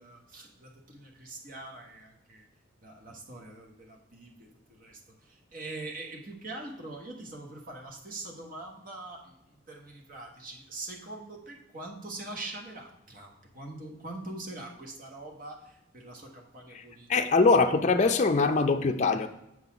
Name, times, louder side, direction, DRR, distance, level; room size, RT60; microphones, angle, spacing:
voice 1, 0.0-2.5 2.8-17.1 17.4-17.5, right 2 dB, 45° right, 1 dB, 1.2 m, -43 dB
voice 2, 17.1-19.3, left 4 dB, 40° left, 6 dB, 0.4 m, -23 dB
7.4 x 4.0 x 5.8 m, 0.85 s
head